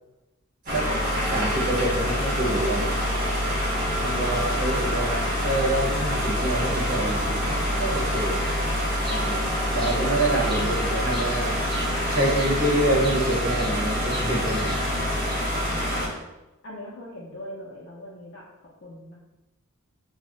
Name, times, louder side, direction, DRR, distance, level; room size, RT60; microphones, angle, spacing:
sound 1, 0.7-16.1, equal, 40° right, 0.8 m, -26 dB
voice 1, 0.7-3.5 4.0-8.4 9.1-9.5 9.7-11.6 12.1-14.8, right 1 dB, 80° right, -3 dB, 0.8 m, -27 dB
voice 2, 4.1-4.7 10.6-10.7 15.2-16.3 16.6-19.1, left 1 dB, 55° left, -5 dB, 0.5 m, -42 dB
Bird vocalization bird call bird song, 8.9-15.4, right 1 dB, 20° right, 0.4 m, -41 dB
2.3 x 2.1 x 3.8 m, 0.99 s
head